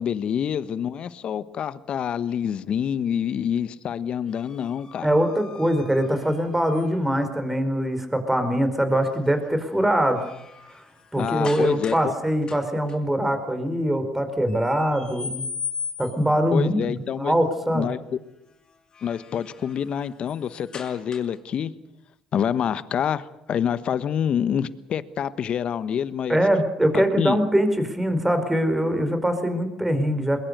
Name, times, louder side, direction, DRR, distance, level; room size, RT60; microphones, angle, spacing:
voice 1, 0.0-5.1 11.2-12.1 16.5-17.3 17.7-18.0 19.0-21.7 22.3-26.4 26.9-27.4, left 8 dB, 55° left, 15 dB, 1.2 m, -27 dB
sound 1, 4.3-7.2 9.0-9.3 9.7-12.1 12.4-13.0 14.5-16.4 18.7-21.5, left 6 dB, 40° left, 6.0 m, -39 dB
voice 2, 5.0-10.2 11.1-15.4 16.0-16.8 17.2-17.9 26.3-30.4, equal, 10° right, 8 dB, 4.7 m, -23 dB
22.0 x 21.5 x 6.8 m, 0.85 s
hypercardioid pair, 65°, 2 cm